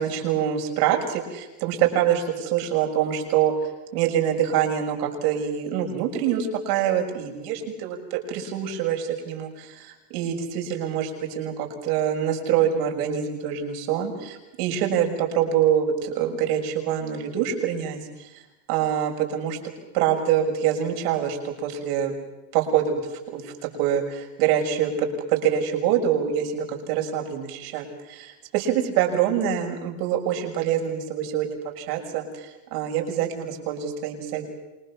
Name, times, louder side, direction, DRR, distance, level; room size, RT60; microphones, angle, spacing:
voice 1, 0.0-3.5 3.9-18.0 18.7-19.6 19.9-22.1 22.5-23.0 23.3-23.5 23.8-34.4, right 9 dB, 70° right, 3 dB, 6.6 m, -25 dB
28.0 x 21.0 x 7.3 m, 1.0 s
supercardioid pair, 120°, 47 cm